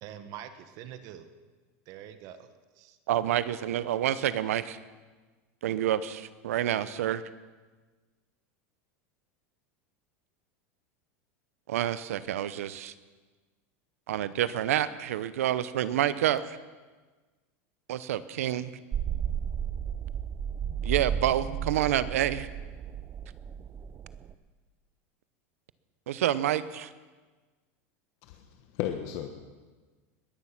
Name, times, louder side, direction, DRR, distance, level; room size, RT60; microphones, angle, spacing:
voice 1, 0.0-1.3 1.9-3.0, right 10 dB, 55° right, 10 dB, 1.3 m, -45 dB
voice 2, 3.1-4.8 5.6-7.2 11.7-12.9 14.1-16.4 17.9-18.7 20.8-22.5 26.1-26.9, right 11 dB, 90° right, 15 dB, 0.8 m, -28 dB
sound 1, 18.9-24.3, right 8 dB, 30° right, 0.7 m, -33 dB
voice 3, 28.2-29.4, left 11 dB, 60° left, 5 dB, 1.2 m, -35 dB
21.5 x 9.5 x 5.9 m, 1.3 s
supercardioid pair, 120°, 8 cm